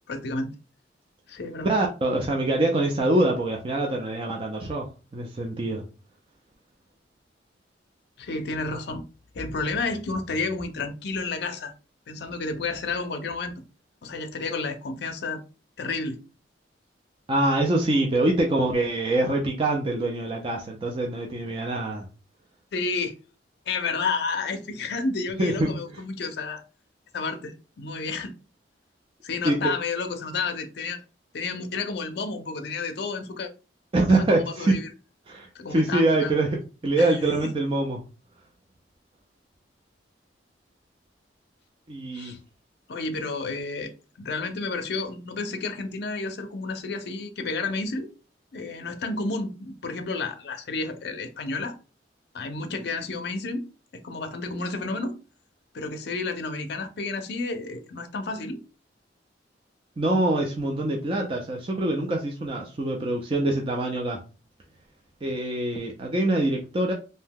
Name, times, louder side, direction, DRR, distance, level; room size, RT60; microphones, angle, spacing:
voice 1, 0.1-0.5 1.3-1.8 8.2-9.1 9.3-11.7 12.1-13.6 14.0-15.4 15.8-16.2 22.7-23.2 23.7-26.6 27.1-28.3 29.2-31.0 31.3-33.5 34.1-34.9 35.5-36.3 37.0-37.1 42.1-42.4 42.9-43.9 44.2-48.1 48.5-51.7 52.3-53.6 54.0-55.2 55.7-58.6, left 3 dB, 65° left, 0.5 m, -31 dB
voice 2, 1.6-4.9 5.1-5.8 17.3-22.1 25.4-26.0 29.4-29.6 33.9-34.7 35.3-38.0 41.9-42.4 60.0-64.2 65.2-66.9, right 2 dB, 30° right, 0.4 m, -24 dB
2.7 x 2.1 x 3.5 m
head